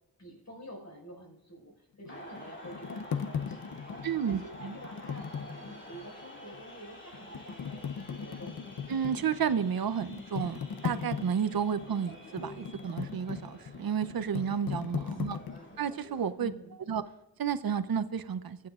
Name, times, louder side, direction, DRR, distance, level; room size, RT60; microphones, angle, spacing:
voice 1, 0.2-8.7 15.0-15.8 16.4-16.8, equal, 45° left, -1 dB, 5.0 m, -49 dB
sound 1, 2.1-6.1 6.5-6.6 7.1-15.6, left 7 dB, 70° left, 0.8 m, -38 dB
sound 2, 2.1-16.3, left 1 dB, 30° left, 2.8 m, -49 dB
voice 2, 4.0-4.8 8.9-15.4 15.8-16.5 16.9-17.0 17.4-18.6, right 7 dB, 70° right, 13 dB, 0.7 m, -31 dB
22.0 x 9.4 x 2.4 m, 0.99 s
wide cardioid pair, 100°, 37 cm